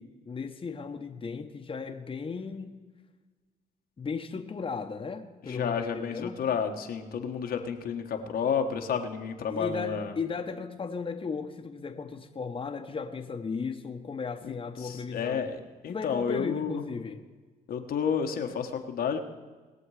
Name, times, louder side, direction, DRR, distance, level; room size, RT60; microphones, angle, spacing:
voice 1, 0.0-2.8 4.0-6.4 9.5-15.4 15.9-17.2, left 5 dB, 35° left, 4 dB, 1.1 m, -36 dB
voice 2, 5.5-10.1 14.4-14.5 14.8-16.8 17.7-19.2, left 7 dB, 70° left, 4 dB, 1.3 m, -31 dB
20.5 x 7.2 x 4.9 m, 1.4 s
supercardioid pair, 75°, 16 cm